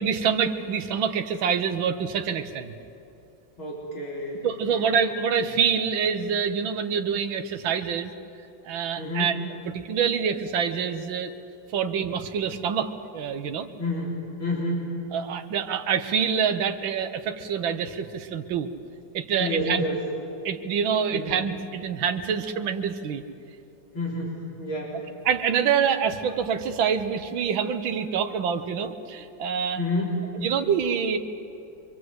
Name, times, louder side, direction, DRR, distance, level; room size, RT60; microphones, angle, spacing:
voice 1, 0.0-2.7 4.4-8.1 8.7-9.4 9.7-11.3 11.7-13.7 15.1-18.7 19.1-19.8 20.5-23.2 25.3-29.8 30.4-31.2, right 7 dB, 75° right, 7 dB, 1.9 m, -26 dB
voice 2, 3.6-4.9 9.0-9.4 13.8-14.9 19.4-20.0 21.1-21.3 23.9-25.0 29.8-30.3, left 1 dB, 85° left, -4 dB, 4.5 m, -30 dB
26.5 x 24.0 x 8.0 m, 2.8 s
omnidirectional pair, 2.2 m